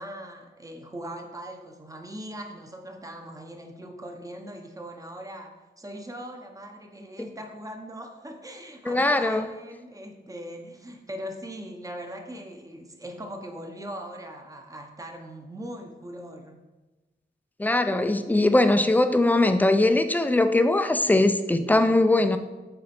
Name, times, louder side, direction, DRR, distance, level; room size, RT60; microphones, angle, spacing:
voice 1, 0.0-16.6, equal, 20° right, 4 dB, 0.7 m, -40 dB
voice 2, 8.9-9.5 17.6-22.4, left 2 dB, 10° left, 9 dB, 0.3 m, -21 dB
7.7 x 4.3 x 4.2 m, 1.2 s
wide cardioid pair, 170°, 19 cm